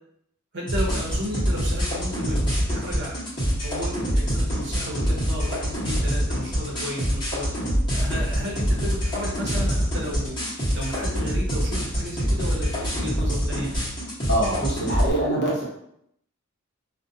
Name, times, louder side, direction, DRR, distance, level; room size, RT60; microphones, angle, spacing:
voice 1, 0.5-3.2 3.6-7.5 7.9-10.4 10.7-13.7, equal, 55° right, -2 dB, 0.7 m, -33 dB
sound 1, 0.7-15.1, equal, 20° left, 1.0 m, -25 dB
voice 2, 14.3-15.6, right 1 dB, 50° left, -4 dB, 0.8 m, -24 dB
2.5 x 2.1 x 2.6 m, 0.74 s
head